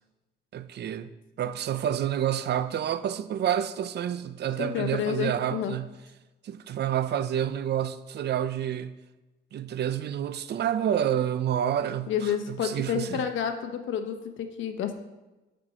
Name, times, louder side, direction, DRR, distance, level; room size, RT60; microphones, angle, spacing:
voice 1, 0.5-1.1 1.4-5.9 6.4-8.9 9.5-13.3, right 10 dB, 60° right, 0.5 m, -29 dB
voice 2, 4.6-5.7 12.1-15.0, left 8 dB, 75° left, 0.9 m, -30 dB
8.8 x 4.5 x 5.5 m
cardioid pair, 90°, 20 cm